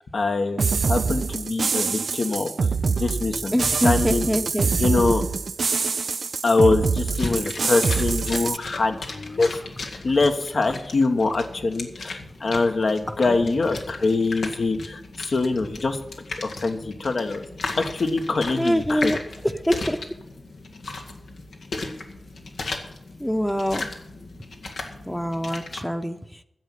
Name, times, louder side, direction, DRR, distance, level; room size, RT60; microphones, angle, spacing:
voice 1, 0.1-2.5 3.0-3.5 3.8-4.3 4.8-5.2 6.4-9.6 10.0-16.0 16.4-17.4 17.8-19.1, left 3 dB, 70° left, 6 dB, 1.4 m, -24 dB
sound 1, 0.6-8.6, right 5 dB, 70° right, 0.3 m, -25 dB
voice 2, 3.5-4.7 13.2-13.6 18.6-19.2 19.4-20.0 23.2-23.9 25.0-26.4, equal, 5° left, 6 dB, 0.9 m, -25 dB
sound 2, 7.1-25.8, left 3 dB, 85° left, 1.6 m, -36 dB
10.0 x 7.3 x 9.2 m, 0.84 s
cardioid pair, 45°, 0 cm